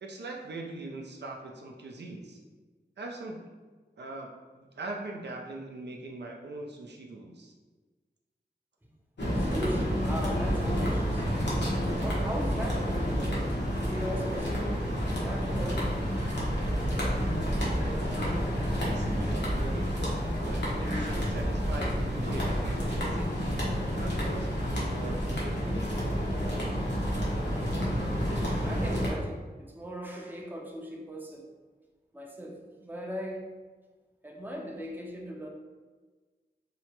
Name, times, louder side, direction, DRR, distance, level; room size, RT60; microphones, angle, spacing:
voice 1, 0.0-2.4 3.0-3.4 4.0-4.3 4.6-7.5 17.4-17.8 18.8-26.0, right 2 dB, 75° right, 0 dB, 0.4 m, -42 dB
sound 1, 9.2-29.1, equal, 80° left, 0.8 m, -29 dB
voice 2, 9.4-11.3 12.0-13.1 13.8-14.8 15.2-15.9 28.4-29.4 29.7-31.4 32.1-33.4 34.2-35.5, equal, 10° right, 0 dB, 0.5 m, -38 dB
2.8 x 2.1 x 2.8 m, 1.4 s
wide cardioid pair, 40°, 18 cm